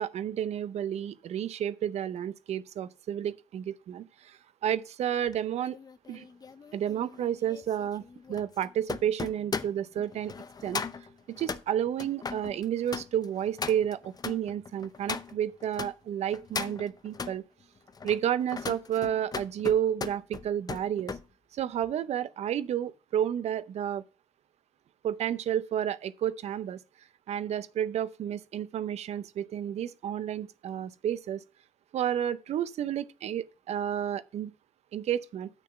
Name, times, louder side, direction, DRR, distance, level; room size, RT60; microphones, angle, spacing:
voice 1, 0.0-5.8 6.1-6.2 6.7-8.0 8.3-10.3 10.6-10.8 11.4-17.4 18.0-21.1 21.5-24.0 25.0-26.8 27.3-31.4 31.9-34.5 34.9-35.5, right 10 dB, 60° right, 0.6 m, -31 dB
sound 1, 5.3-15.9 16.3-17.4 17.9-21.2 21.6-21.9, left 5 dB, 30° left, 0.6 m, -38 dB
7.5 x 6.5 x 5.2 m
supercardioid pair, 60°, 12 cm